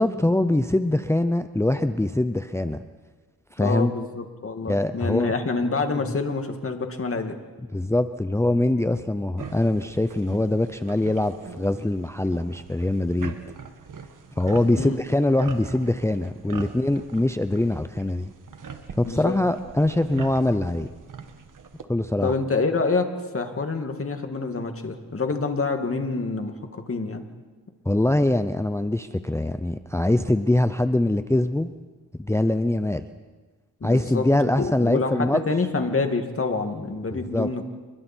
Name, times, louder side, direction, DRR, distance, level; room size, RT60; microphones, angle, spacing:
voice 1, 0.0-2.8 3.5-3.9 4.7-5.3 7.7-13.3 14.4-18.3 19.0-20.9 21.9-22.3 27.9-31.7 32.2-33.0 33.8-35.4 37.3-37.5, left 1 dB, 5° left, 10 dB, 0.7 m, -23 dB
voice 2, 3.6-7.4 14.8-15.0 19.0-19.3 22.2-27.2 33.8-34.2 34.6-37.6, left 3 dB, 35° left, 5 dB, 2.4 m, -27 dB
sound 1, 9.4-21.8, right 6 dB, 55° right, 1.9 m, -42 dB
29.0 x 21.5 x 4.6 m, 1.4 s
cardioid pair, 80°, 37 cm